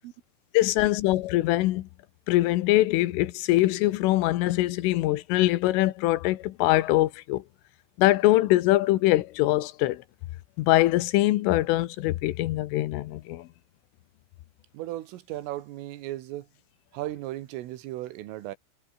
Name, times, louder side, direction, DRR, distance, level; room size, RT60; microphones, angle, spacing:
voice 1, 0.5-1.9 2.3-7.4 8.0-10.0 10.6-13.5, left 17 dB, 85° left, 3.7 m, -23 dB
voice 2, 14.7-16.5 16.9-18.6, right 15 dB, 85° right, 4.0 m, -36 dB
omnidirectional pair, 5.7 m